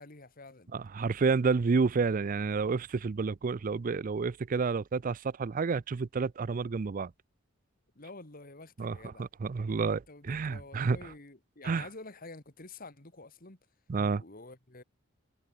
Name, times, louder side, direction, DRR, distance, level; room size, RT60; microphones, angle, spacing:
voice 1, 0.0-0.7 8.0-9.3 10.1-13.6 14.2-14.8, left 2 dB, 45° left, 2.4 m, -49 dB
voice 2, 0.7-7.1 8.8-11.0 11.6-11.9 13.9-14.2, right 4 dB, 40° right, 0.4 m, -30 dB
head